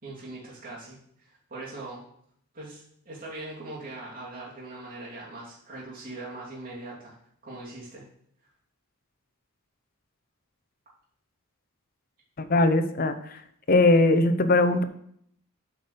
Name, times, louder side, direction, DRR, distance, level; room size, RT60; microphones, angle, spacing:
voice 1, 0.0-2.0 2.5-7.1 7.4-8.0, right 2 dB, 40° right, -6 dB, 3.0 m, -41 dB
voice 2, 12.4-13.2 13.7-14.8, left 2 dB, 40° left, 10 dB, 0.7 m, -20 dB
8.4 x 5.3 x 6.8 m, 0.68 s
head